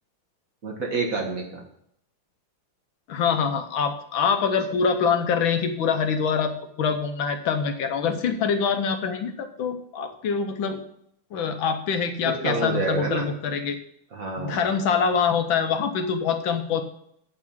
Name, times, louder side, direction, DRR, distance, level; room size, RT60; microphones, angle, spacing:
voice 1, 0.6-1.6 12.4-13.3 14.1-14.7, right 3 dB, 45° right, 1 dB, 1.7 m, -28 dB
voice 2, 3.1-10.8 11.3-13.8 14.4-16.8, left 6 dB, 70° left, 7 dB, 1.5 m, -25 dB
7.8 x 6.0 x 7.1 m, 0.71 s
omnidirectional pair, 2.3 m